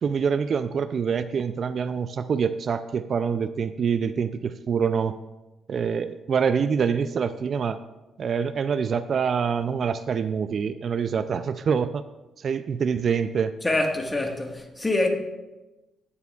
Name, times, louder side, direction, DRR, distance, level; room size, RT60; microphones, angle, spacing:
voice 1, 0.0-5.2 5.7-7.8 8.2-12.0 12.4-13.5, right 6 dB, 50° right, 0.3 m, -25 dB
voice 2, 13.6-15.1, left 2 dB, 15° left, 1.5 m, -25 dB
17.0 x 6.9 x 2.4 m
cardioid pair, 90°, 0 cm